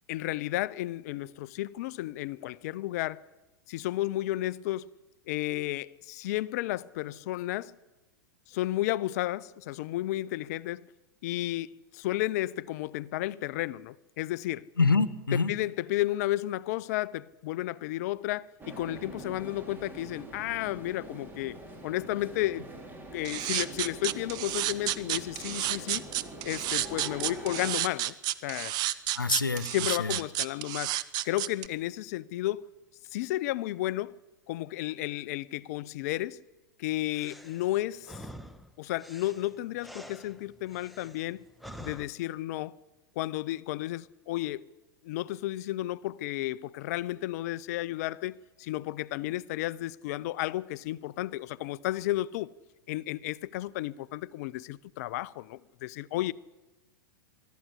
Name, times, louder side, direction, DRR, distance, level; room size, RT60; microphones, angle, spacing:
voice 1, 0.1-3.2 3.7-4.9 5.3-7.8 8.5-10.9 11.2-14.7 15.3-21.6 21.8-22.7 23.1-26.1 26.4-28.1 28.4-28.8 29.7-30.9 31.2-32.7 33.1-34.2 34.5-36.4 36.8-38.1 38.8-41.4 41.8-42.8 43.2-44.6 45.0-52.5 52.9-56.3, left 16 dB, 50° left, 0.6 m, -32 dB
voice 2, 14.8-15.5 29.1-29.7 30.0-30.2, left 4 dB, 85° left, 1.1 m, -25 dB
sound 1, 18.6-27.7, right 2 dB, 20° right, 4.1 m, -44 dB
sound 2, 23.2-31.7, right 15 dB, 40° right, 1.0 m, -31 dB
sound 3, 37.1-42.1, equal, ahead, 1.2 m, -47 dB
23.5 x 13.0 x 9.9 m
figure-of-eight pair, 95°, 11 cm